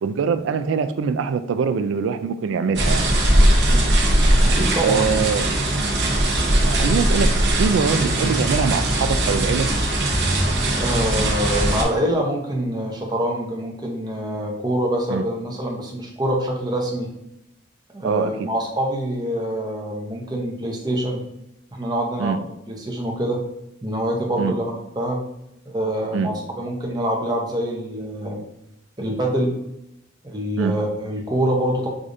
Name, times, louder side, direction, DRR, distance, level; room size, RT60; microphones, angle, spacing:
voice 1, 0.0-3.1 4.8-5.9 6.7-9.7 15.1-15.2 18.0-18.5 22.2-22.4 24.4-24.5 26.1-26.3 30.6-30.8, right 6 dB, 85° right, 0.3 m, -23 dB
sound 1, 2.7-11.8, right 1 dB, 60° right, 0.7 m, -19 dB
voice 2, 4.4-5.1 10.7-17.1 17.9-21.2 21.7-22.4 22.7-23.4 23.8-25.2 25.7-28.5 29.0-29.5 30.2-31.9, right 1 dB, 20° right, 0.6 m, -25 dB
4.9 x 2.4 x 2.6 m
head